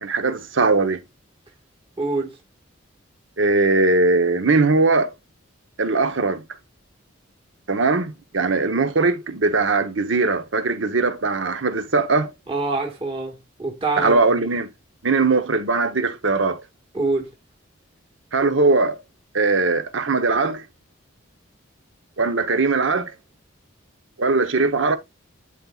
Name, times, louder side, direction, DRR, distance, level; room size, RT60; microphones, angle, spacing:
voice 1, 0.0-1.0 3.4-5.1 5.8-6.4 7.7-12.3 14.0-14.7 15.0-16.6 18.3-19.0 19.3-20.6 22.2-23.1 24.2-25.0, right 3 dB, 70° right, 0.9 m, -20 dB
voice 2, 2.0-2.3 12.5-14.2 16.9-17.3, right 3 dB, 25° right, 1.6 m, -25 dB
12.5 x 4.1 x 2.4 m
head